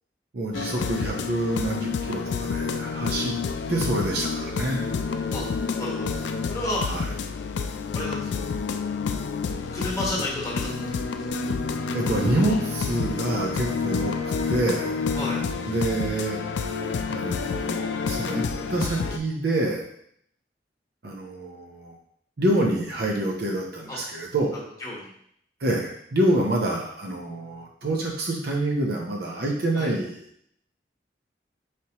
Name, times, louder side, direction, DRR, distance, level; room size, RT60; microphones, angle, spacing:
voice 1, 0.3-3.3 3.7-4.9 6.9-7.1 11.9-14.1 14.5-14.9 15.7-16.4 17.1-18.4 18.7-19.8 21.0-21.9 22.4-24.6 25.6-30.3, right 1 dB, 60° right, -1 dB, 0.7 m, -27 dB
sound 1, 0.5-19.2, left 5 dB, 75° left, 0.3 m, -29 dB
voice 2, 5.8-6.2 6.5-6.8 7.9-8.4 9.7-11.0 12.0-12.1 12.4-12.6 15.1-15.4 23.9-24.0 24.8-25.1 29.8-29.9, left 1 dB, 20° left, -5 dB, 1.1 m, -31 dB
4.3 x 3.3 x 2.9 m, 0.67 s
head